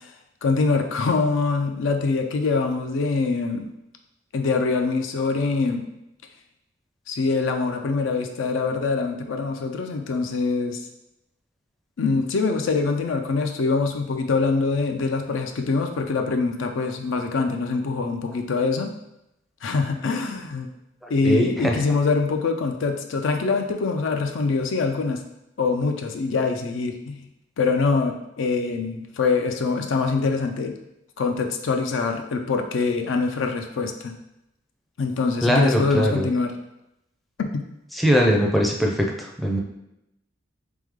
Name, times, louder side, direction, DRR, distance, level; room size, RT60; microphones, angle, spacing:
voice 1, 0.4-3.7 4.3-5.9 7.1-10.8 12.0-18.9 19.6-20.7 21.1-25.2 25.6-27.3 27.6-30.8 31.2-34.2 35.0-36.5 37.4-37.7, left 4 dB, 75° left, 5 dB, 0.4 m, -24 dB
voice 2, 21.0-21.8 35.4-36.3 37.9-39.6, equal, ahead, 0 dB, 0.4 m, -21 dB
3.4 x 3.1 x 3.5 m, 0.85 s
head